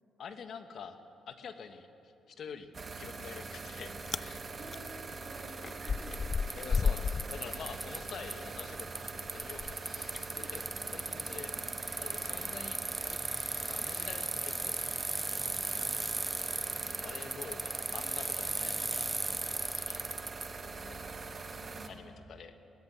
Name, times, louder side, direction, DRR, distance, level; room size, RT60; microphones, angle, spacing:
voice 1, 0.2-1.0 1.3-2.7 3.0-4.4 6.5-10.0 10.3-11.5 12.0-12.8 13.6-15.1 16.9-19.1 19.8-21.1 21.9-22.5, left 6 dB, 60° left, 8 dB, 1.5 m, -47 dB
sound 1, 2.7-21.9, right 4 dB, 35° right, 1.7 m, -43 dB
Chewing mastication, 3.2-3.7 4.0-4.3 4.7-8.5 8.8-14.2, left 5 dB, 40° left, 0.4 m, -36 dB
voice 2, 4.5-6.6 11.0-11.6 21.4-22.0, right 1 dB, 60° right, -1 dB, 6.5 m, -52 dB
Bicycle, 4.9-5.0 5.9-6.0 6.1-8.3 8.6-20.5, right 2 dB, 15° right, 0.6 m, -36 dB
19.0 x 14.5 x 9.3 m, 2.7 s
cardioid pair, 90°, 0 cm